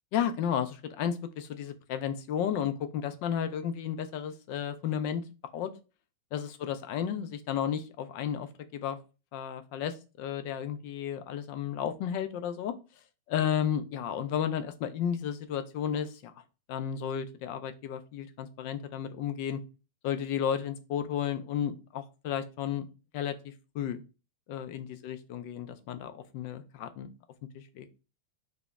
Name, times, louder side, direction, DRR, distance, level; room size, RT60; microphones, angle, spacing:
voice 1, 0.1-5.2 5.5-5.7 6.3-9.0 9.3-12.7 13.3-16.3 16.7-19.6 20.0-22.9 23.1-24.0 24.5-27.1 27.5-27.9, left 9 dB, 45° left, 10 dB, 0.3 m, -33 dB
2.0 x 2.0 x 3.4 m, 0.31 s
supercardioid pair, 160°, 0 cm